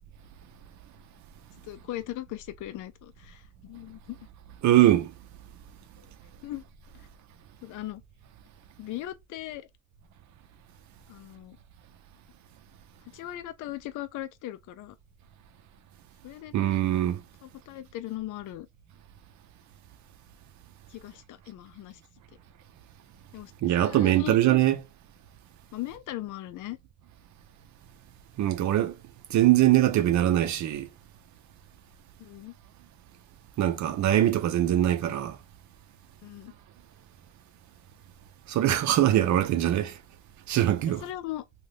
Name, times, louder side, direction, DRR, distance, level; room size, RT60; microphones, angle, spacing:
voice 1, 1.6-4.2 6.4-6.6 6.9-7.1 7.6-8.0 8.8-9.7 11.1-11.6 13.1-15.0 16.2-16.5 17.4-18.7 20.9-22.0 23.3-24.4 25.7-26.8 32.2-32.5 36.2-36.5 39.2-39.3 40.9-41.4, left 14 dB, 80° left, 0.5 m, -39 dB
voice 2, 4.6-5.1 16.5-17.2 23.6-24.8 28.4-29.0 29.3-30.9 33.6-35.4 38.5-40.0 40.5-41.0, right 13 dB, 70° right, 0.6 m, -22 dB
2.7 x 2.3 x 3.3 m
cardioid pair, 90°, 30 cm